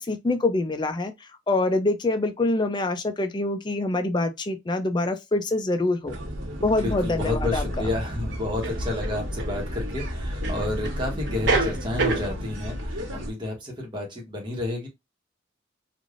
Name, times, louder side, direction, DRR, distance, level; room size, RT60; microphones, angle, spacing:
voice 1, 0.0-6.1 6.6-7.6, left 2 dB, 25° left, 0.4 m, -25 dB
sound 1, 6.1-13.3, equal, 85° right, 1.3 m, -32 dB
voice 2, 6.8-14.9, left 2 dB, 25° right, 1.1 m, -31 dB
sound 2, 6.9-7.0 8.6-9.5 10.4-11.0 11.3-12.3, right 3 dB, 70° right, 1.0 m, -26 dB
3.3 x 2.5 x 2.5 m
head